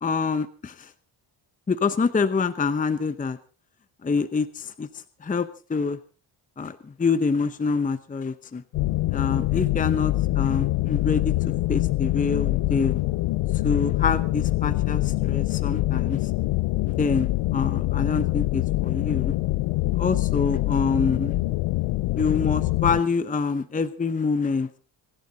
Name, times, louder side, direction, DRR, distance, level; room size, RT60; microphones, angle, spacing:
voice 1, 0.0-0.9 1.7-3.4 4.0-4.9 5.2-6.0 6.6-8.6 9.1-13.0 13.6-16.3 17.0-19.3 20.0-21.4 22.2-24.8, left 4 dB, 15° left, 12 dB, 0.8 m, -26 dB
sound 1, 8.7-23.0, left 18 dB, 85° left, 0.7 m, -24 dB
26.5 x 11.5 x 4.0 m, 0.36 s
cardioid pair, 135°, 48 cm